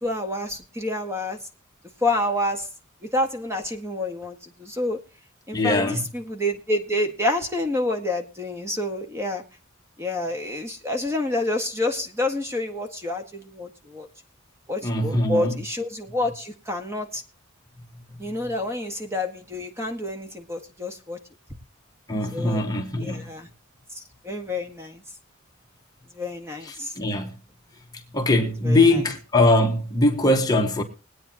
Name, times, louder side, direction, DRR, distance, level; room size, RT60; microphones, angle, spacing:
voice 1, 0.0-1.4 2.0-2.7 3.1-5.0 5.5-9.4 10.0-14.1 14.7-17.2 18.2-21.2 22.3-22.7 23.0-23.5 23.9-25.0 26.1-26.9 28.6-29.0, left 1 dB, 15° right, 1.7 m, -28 dB
voice 2, 5.5-6.0 14.8-15.5 22.1-23.3 26.6-27.4 28.1-30.8, left 2 dB, 20° left, 1.5 m, -21 dB
21.5 x 9.1 x 2.9 m
head